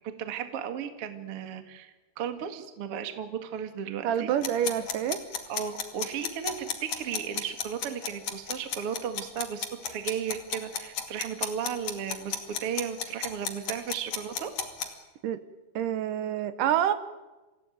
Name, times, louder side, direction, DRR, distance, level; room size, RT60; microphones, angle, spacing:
voice 1, 0.2-4.3 5.5-6.7 7.0-14.5, right 8 dB, 45° right, 7 dB, 1.9 m, -35 dB
voice 2, 4.0-5.2 15.2-15.4 15.8-16.9, right 10 dB, 90° right, 11 dB, 1.8 m, -27 dB
sound 1, 4.4-14.9, left 7 dB, 45° left, 3.1 m, -33 dB
28.5 x 17.0 x 9.2 m, 1.1 s
omnidirectional pair, 5.3 m